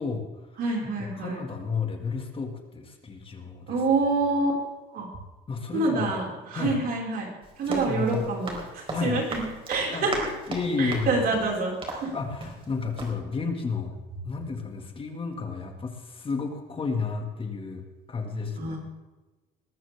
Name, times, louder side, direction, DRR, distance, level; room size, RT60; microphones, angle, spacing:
voice 1, 0.0-0.5 1.0-3.8 5.5-6.1 6.5-6.8 7.6-8.2 8.9-9.2 9.9-10.1 10.5-11.2 12.1-13.9 14.2-17.8 18.1-18.8, left 4 dB, 30° left, 4 dB, 2.1 m, -31 dB
voice 2, 0.6-1.4 3.7-4.5 4.9-5.1 5.7-7.3 7.6-10.3 10.8-12.1 18.6-18.8, right 3 dB, 60° right, -1 dB, 5.5 m, -27 dB
Run, 7.4-12.7 13.0-13.1, right 2 dB, 30° right, 4.2 m, -37 dB
20.5 x 14.0 x 3.6 m, 1.1 s
cardioid pair, 110°, 17 cm